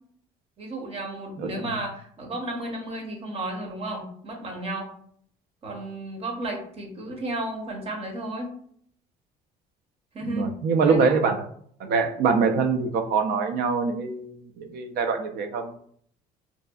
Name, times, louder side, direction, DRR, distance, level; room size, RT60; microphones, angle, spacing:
voice 1, 0.6-4.9 5.6-8.5 10.1-10.5 10.8-11.2, right 1 dB, 35° right, 1 dB, 0.7 m, -33 dB
voice 2, 10.2-11.4 11.8-15.8, right 5 dB, 65° right, 6 dB, 0.4 m, -24 dB
2.6 x 2.2 x 2.3 m, 0.62 s
cardioid pair, 110°, 17 cm